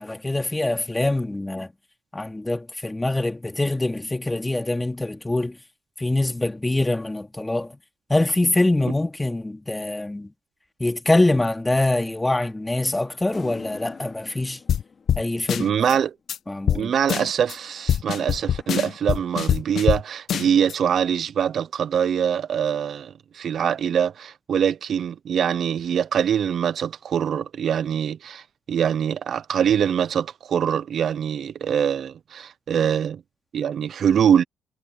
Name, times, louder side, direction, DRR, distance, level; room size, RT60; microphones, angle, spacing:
voice 1, 0.0-1.7 2.1-5.6 6.0-7.7 8.1-10.3 10.8-14.6 15.2-15.9 16.5-16.9, left 2 dB, 15° left, 2.4 m, -24 dB
sound 1, 13.3-16.0 17.4-19.5, left 5 dB, 45° left, 4.5 m, -45 dB
sound 2, 14.7-14.8 15.1-15.2 15.5-15.9 16.3-16.4 16.7-16.8 17.1-17.5 17.9-20.0 20.3-20.7, left 9 dB, 65° left, 0.6 m, -23 dB
voice 2, 15.6-16.1 16.7-33.2 33.5-34.4, right 8 dB, 60° right, 0.5 m, -23 dB
cardioid pair, 90°, 0 cm